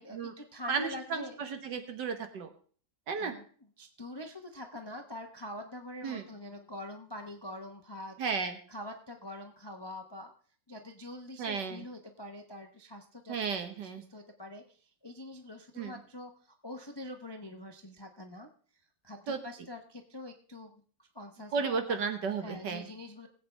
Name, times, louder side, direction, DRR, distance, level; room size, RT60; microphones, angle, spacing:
voice 1, 0.0-1.4 3.2-3.4 3.8-8.2 8.7-10.3 10.7-18.5 19.0-20.7 21.0-22.0 22.4-23.3, left 1 dB, 30° left, 5 dB, 0.4 m, -45 dB
voice 2, 0.7-2.5 3.1-3.3 6.0-6.2 8.2-8.6 11.4-11.8 13.3-14.0 15.7-16.0 19.3-19.4 21.5-22.9, right 5 dB, 65° right, 7 dB, 1.8 m, -33 dB
19.5 x 8.4 x 3.3 m, 0.43 s
omnidirectional pair, 2.1 m